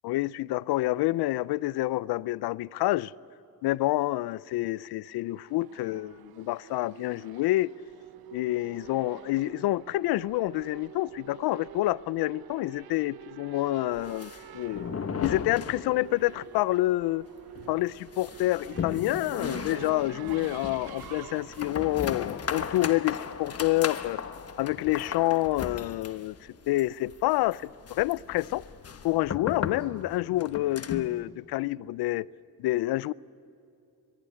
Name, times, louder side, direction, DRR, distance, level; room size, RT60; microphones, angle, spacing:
voice 1, 0.0-3.1 3.6-7.7 8.3-14.9 15.2-17.3 17.7-24.2 24.6-26.3 26.7-28.6 29.0-32.3 32.6-33.1, left 17 dB, 85° left, 0.5 m, -28 dB
Race car auto racing / Accelerating revving vroom, 5.0-23.2, right 12 dB, 75° right, 0.9 m, -47 dB
sound 1, 13.9-16.3 16.6-16.7 17.0-17.1 17.5-31.2, left 6 dB, 40° left, 1.2 m, -37 dB
23.5 x 22.0 x 9.8 m
cardioid pair, 90°, 37 cm